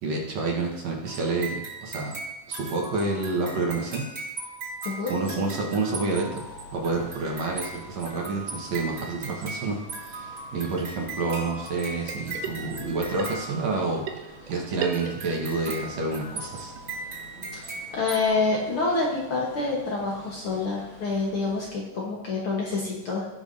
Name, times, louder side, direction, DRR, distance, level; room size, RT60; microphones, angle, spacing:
voice 1, 0.0-2.2 2.5-4.0 5.1-6.4 6.7-9.8 10.0-14.1 14.5-16.7, right 3 dB, 65° right, -1 dB, 2.4 m, -29 dB
sound 1, 1.0-14.2 14.9-18.3, right 3 dB, 30° right, 2.3 m, -38 dB
voice 2, 4.9-5.4 17.5-23.3, left 3 dB, 55° left, -3 dB, 1.8 m, -27 dB
sound 2, 6.0-21.7, left 1 dB, 35° left, 2.7 m, -48 dB
sound 3, 12.1-12.9 13.2-15.7 16.0-16.1 16.3-16.4 16.8-16.9 17.2-17.3 17.5-17.6 18.0-18.1, right 8 dB, 85° right, 2.4 m, -36 dB
17.5 x 5.9 x 2.7 m, 1.0 s
omnidirectional pair, 3.6 m